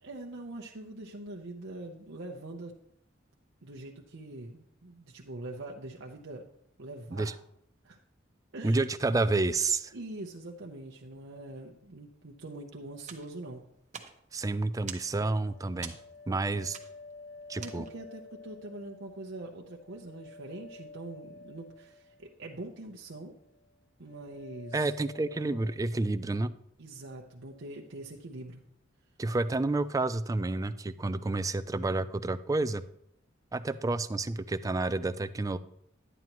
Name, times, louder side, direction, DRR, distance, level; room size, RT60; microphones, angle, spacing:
voice 1, 0.0-2.7 3.6-6.5 6.8-7.4 7.8-8.0 8.5-8.9 9.9-13.6 17.6-23.3 24.0-24.9 26.8-28.6, right 2 dB, 80° right, -1 dB, 0.8 m, -43 dB
voice 2, 8.6-9.9 14.3-16.0 16.3-16.8 17.5-17.9 24.7-26.5 29.2-32.8 33.5-35.6, right 2 dB, 20° right, 13 dB, 0.3 m, -29 dB
sound 1, 13.1-18.2, right 7 dB, 40° right, 0.9 m, -47 dB
sound 2, 14.7-22.9 23.2-23.7 24.0-25.8, left 3 dB, 80° left, 1.6 m, -51 dB
11.0 x 9.1 x 3.0 m, 0.73 s
head